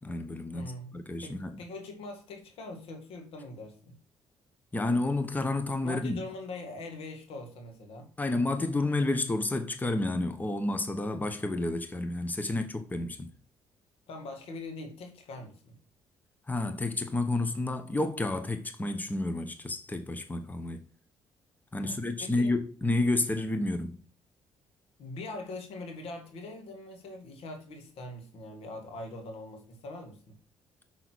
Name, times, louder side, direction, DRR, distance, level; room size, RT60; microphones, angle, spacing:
voice 1, 0.0-1.6 4.7-6.3 8.2-13.3 16.5-20.8 21.7-24.0, left 2 dB, 15° left, 1.1 m, -30 dB
voice 2, 0.5-0.9 1.2-4.0 5.8-8.1 14.1-15.7 21.8-22.5 25.0-30.4, left 2 dB, 75° left, 2.0 m, -42 dB
6.1 x 5.8 x 4.6 m
supercardioid pair, 60°, 10 cm